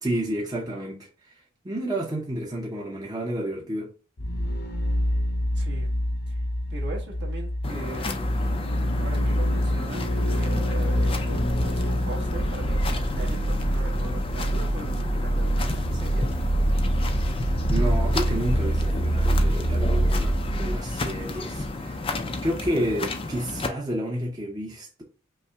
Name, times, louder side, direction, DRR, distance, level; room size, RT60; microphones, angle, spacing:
voice 1, 0.0-1.3 1.6-3.9 17.7-22.0 22.4-25.0, right 1 dB, 20° right, 0.7 m, -30 dB
sound 1, 4.2-21.7 22.0-22.1, equal, 50° left, 0.8 m, -25 dB
voice 2, 5.5-5.9 6.3-6.4 6.7-8.3 9.0-11.2 11.6-16.3, right 3 dB, 55° right, 1.3 m, -40 dB
sound 2, 7.6-23.7, left 2 dB, 25° left, 0.4 m, -32 dB
5.4 x 2.1 x 3.4 m
head